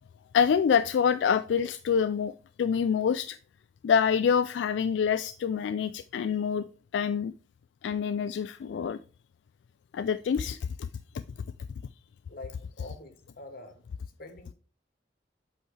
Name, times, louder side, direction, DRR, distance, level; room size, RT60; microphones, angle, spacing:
voice 1, 0.3-3.4 3.8-6.7 6.9-7.3 7.8-9.0 9.9-10.9 12.8-12.9, left 7 dB, 80° left, 0.3 m, -26 dB
voice 2, 12.3-13.8 14.2-14.5, left 2 dB, 55° left, 1.3 m, -45 dB
8.0 x 5.3 x 3.2 m
head